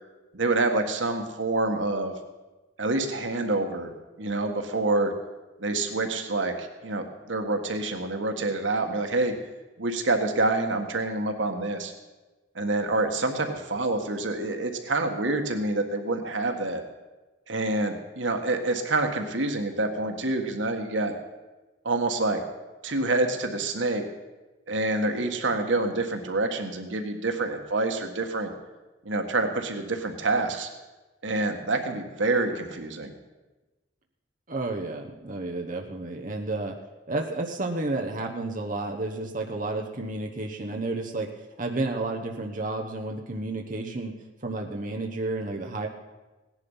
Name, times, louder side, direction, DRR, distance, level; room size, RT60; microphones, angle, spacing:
voice 1, 0.3-2.1 2.8-5.1 5.6-9.3 9.8-11.9 12.5-16.8 17.5-21.1 21.8-22.4 22.8-24.0 24.7-28.5 29.0-30.7 31.2-33.1, right 2 dB, 85° right, 5 dB, 1.7 m, -27 dB
voice 2, 34.5-36.8 37.1-41.3 41.6-44.2 44.4-45.9, right 2 dB, 45° right, 2 dB, 1.1 m, -31 dB
17.0 x 10.5 x 5.6 m, 1.2 s
head